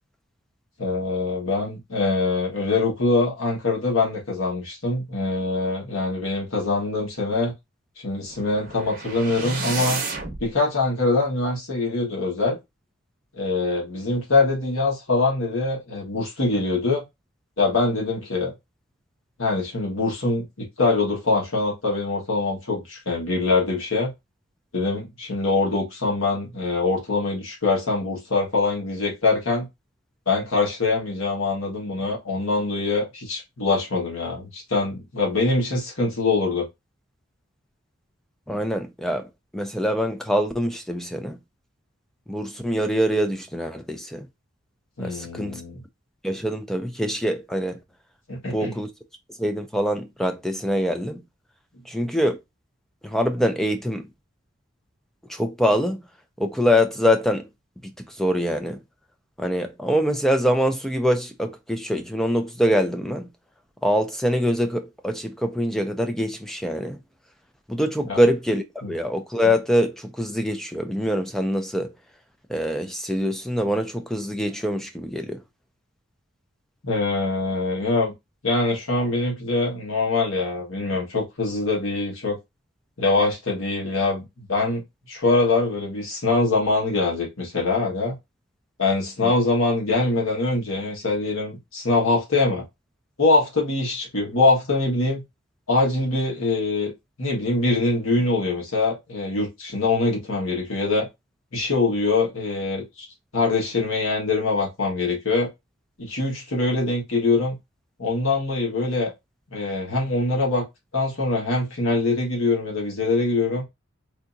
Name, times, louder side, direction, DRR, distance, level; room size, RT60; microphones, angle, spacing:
voice 1, 0.8-7.5 8.0-10.0 10.4-12.6 13.4-17.0 17.6-18.5 19.4-24.1 24.7-29.7 30.3-36.7 45.0-45.8 48.3-48.7 68.1-68.2 68.8-68.9 76.8-78.1 78.4-82.4 83.0-84.8 85.1-88.2 88.8-92.6 93.2-95.2 95.7-96.9 97.2-101.1 101.5-103.1 103.3-105.5 106.0-107.6 108.0-109.1 109.5-110.6 110.9-113.6, left 3 dB, 80° left, 1.4 m, -23 dB
sound 1, 8.3-10.5, right 4 dB, 40° right, 0.8 m, -31 dB
voice 2, 38.5-39.3 39.5-41.4 42.3-44.3 45.0-45.6 46.2-47.8 48.4-48.9 49.3-51.2 51.9-52.4 53.0-54.1 55.3-56.0 56.4-57.5 58.1-58.8 59.4-63.3 63.8-67.0 67.7-71.9 72.5-75.4 89.2-89.3, equal, ahead, 0.3 m, -24 dB
3.4 x 2.8 x 2.6 m
head